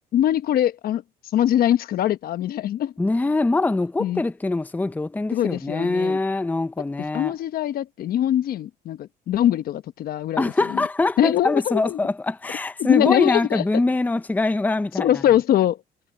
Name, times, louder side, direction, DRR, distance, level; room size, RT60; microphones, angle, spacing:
voice 1, 0.1-1.0 1.3-2.9 4.0-4.2 5.3-6.2 7.1-10.9 11.2-12.0 12.8-13.6 15.0-15.8, left 11 dB, 60° left, 1.0 m, -22 dB
voice 2, 3.0-7.3 10.4-15.2, left 2 dB, 10° left, 0.7 m, -23 dB
cardioid pair, 110°, 17 cm